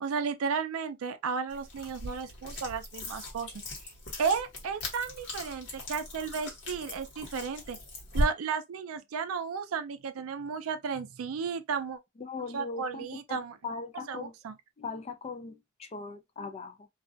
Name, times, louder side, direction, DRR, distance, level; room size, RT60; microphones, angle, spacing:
voice 1, 0.0-3.5 4.2-7.8 8.1-12.0 12.5-13.6 14.1-14.6, right 6 dB, 85° right, 0.4 m, -33 dB
sound 1, 1.5-8.2, equal, 60° left, 1.1 m, -38 dB
voice 2, 12.2-14.3 14.8-16.9, left 4 dB, 30° left, 0.4 m, -40 dB
2.3 x 2.1 x 2.5 m
head